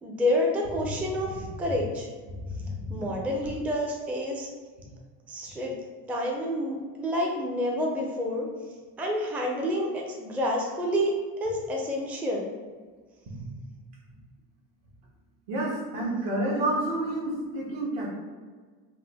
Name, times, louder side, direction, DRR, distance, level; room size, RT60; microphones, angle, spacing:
voice 1, 0.0-2.1 2.9-4.5 5.3-5.8 6.1-8.5 9.0-11.1 11.4-12.5, left 1 dB, 5° right, -1 dB, 0.4 m, -28 dB
voice 2, 15.5-18.1, right 1 dB, 65° right, -3 dB, 1.3 m, -29 dB
3.6 x 2.1 x 3.4 m, 1.5 s
supercardioid pair, 80°, 46 cm